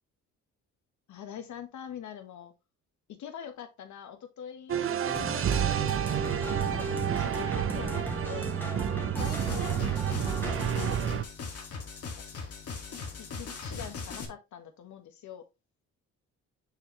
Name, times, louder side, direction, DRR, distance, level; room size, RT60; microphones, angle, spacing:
voice 1, 1.1-2.5 3.1-5.8 6.4-6.9 7.2-8.5 9.2-11.2 12.0-12.1 13.2-15.4, left 9 dB, 70° left, 1.4 m, -44 dB
sound 1, 4.7-11.2, right 9 dB, 45° right, 0.7 m, -29 dB
sound 2, 5.2-11.0, left 1 dB, 5° left, 1.8 m, -39 dB
sound 3, 9.2-14.2, left 4 dB, 55° left, 2.0 m, -40 dB
6.5 x 5.0 x 3.0 m
cardioid pair, 90°, 30 cm